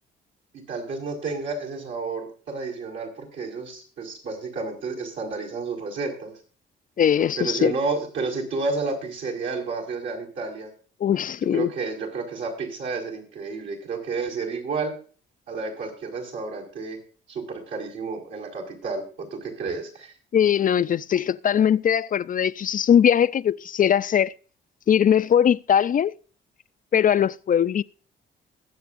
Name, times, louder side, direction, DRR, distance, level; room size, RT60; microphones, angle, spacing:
voice 1, 0.5-6.3 7.4-10.7 11.5-14.9 15.5-17.0 17.3-20.1, right 4 dB, 70° right, 5.1 m, -31 dB
voice 2, 7.0-7.7 11.0-11.7 20.3-24.3 24.9-26.1 26.9-27.8, left 9 dB, 45° left, 0.5 m, -20 dB
21.0 x 7.8 x 2.6 m
cardioid pair, 90°, 20 cm